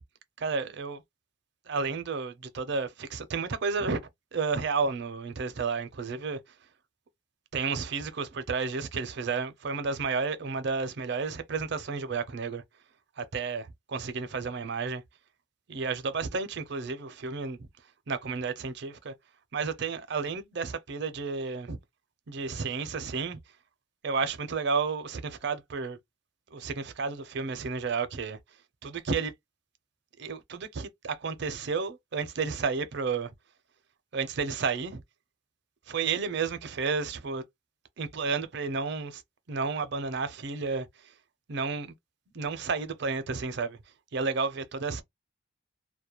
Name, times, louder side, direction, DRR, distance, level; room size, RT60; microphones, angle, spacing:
voice 1, 0.4-1.0 1.7-4.0 4.3-6.4 7.5-12.6 13.2-15.0 15.7-17.7 18.1-19.1 19.5-21.8 22.3-23.4 24.0-26.0 26.5-28.4 28.8-29.3 30.2-33.3 34.1-35.0 35.9-37.4 38.0-39.2 39.5-41.1 41.5-41.9 42.3-43.8 44.1-45.0, right 4 dB, 55° right, 0.5 m, -31 dB
2.2 x 2.1 x 2.9 m
head